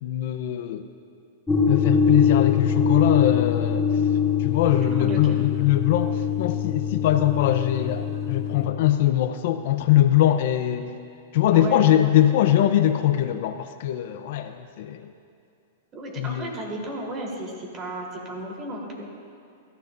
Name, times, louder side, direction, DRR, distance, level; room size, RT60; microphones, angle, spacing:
voice 1, 0.0-0.9 1.7-3.9 4.4-10.9 11.3-15.1 16.2-16.5, left 12 dB, 60° left, 9 dB, 0.7 m, -22 dB
sound 1, 1.5-8.7, left 7 dB, 10° left, 1.5 m, -23 dB
voice 2, 5.0-5.4 11.5-12.0 15.9-19.1, right 1 dB, 30° right, -1 dB, 3.7 m, -33 dB
23.5 x 15.0 x 2.7 m, 2.5 s
hypercardioid pair, 135°, 0 cm